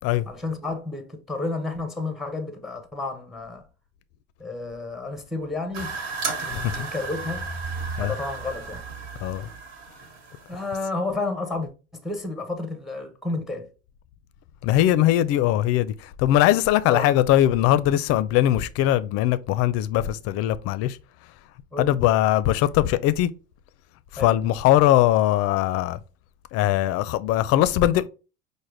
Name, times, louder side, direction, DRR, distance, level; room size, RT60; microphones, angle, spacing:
voice 1, 0.3-3.7 4.4-7.5 8.0-8.8 10.5-13.7 16.9-17.1 21.7-22.0 24.2-24.4, left 3 dB, ahead, 0.6 m, -31 dB
sound 1, 5.7-10.8, right 4 dB, 55° right, 1.3 m, -34 dB
voice 2, 6.5-6.8 8.0-8.1 9.2-9.5 14.6-21.0 21.8-23.3 24.1-26.0 26.5-28.1, left 13 dB, 50° left, 0.4 m, -21 dB
4.8 x 2.1 x 3.2 m
hypercardioid pair, 90°, 32 cm